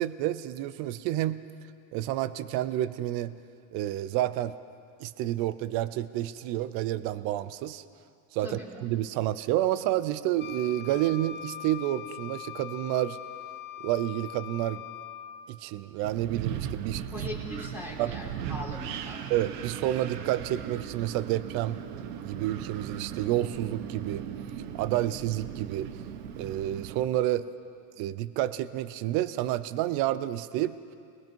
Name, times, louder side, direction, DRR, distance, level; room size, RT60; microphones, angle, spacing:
voice 1, 0.0-1.4 1.9-3.3 3.7-4.5 5.0-7.8 8.3-13.2 13.8-14.8 15.5-17.0 18.0-18.1 19.3-21.8 22.2-24.2 24.7-25.9 26.4-27.4 28.0-30.8, right 14 dB, 50° right, 15 dB, 0.8 m, -29 dB
Wind instrument woodwind instrument, 10.4-15.5, left 12 dB, 25° left, 0.6 m, -42 dB
Wind, 16.0-27.0, right 9 dB, 90° right, 1.4 m, -38 dB
voice 2, 17.1-19.2, left 1 dB, 5° right, -3 dB, 3.7 m, -39 dB
29.5 x 21.0 x 4.6 m, 2.3 s
cardioid pair, 155°, 46 cm